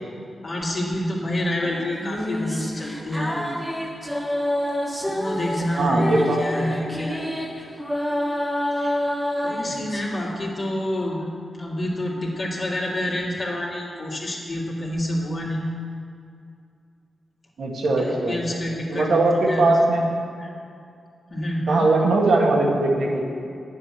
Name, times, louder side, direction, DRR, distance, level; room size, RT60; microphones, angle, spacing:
voice 1, 0.4-3.6 5.0-7.4 8.8-9.0 9.4-11.3 11.5-15.6 18.0-19.6 20.4-20.5 21.3-21.9, left 1 dB, 40° left, -4 dB, 2.2 m, -28 dB
sound 1, 1.6-10.3, left 1 dB, 5° right, 1.1 m, -28 dB
voice 2, 5.8-6.8 9.7-9.8 17.6-18.3 18.9-20.0 21.7-23.2, right 2 dB, 70° right, 0 dB, 1.9 m, -20 dB
9.2 x 7.5 x 7.6 m, 2.4 s
wide cardioid pair, 100°, 0 cm